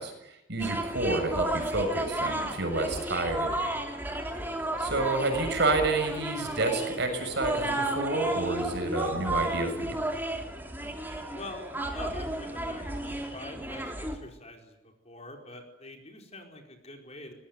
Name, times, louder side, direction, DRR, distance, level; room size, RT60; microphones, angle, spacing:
voice 1, 0.0-3.5 4.8-10.0, right 2 dB, 60° right, 5 dB, 6.9 m, -29 dB
sound 1, 0.6-14.2, right 1 dB, 10° right, 3.2 m, -33 dB
voice 2, 11.3-14.7 15.0-17.3, left 2 dB, 35° left, 3 dB, 4.6 m, -45 dB
24.5 x 19.5 x 9.5 m, 0.89 s
head